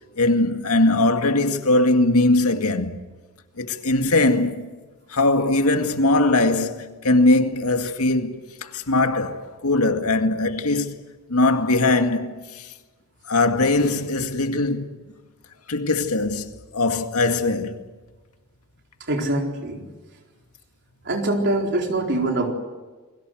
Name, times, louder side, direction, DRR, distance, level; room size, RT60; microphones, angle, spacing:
voice 1, 0.2-3.0 3.6-4.7 5.1-11.0 11.3-12.7 13.3-14.9 15.7-17.8, left 2 dB, 85° left, 2.1 m, -21 dB
voice 2, 19.0-19.8 21.0-22.5, right 2 dB, 55° right, 4.3 m, -23 dB
29.0 x 22.5 x 7.8 m
head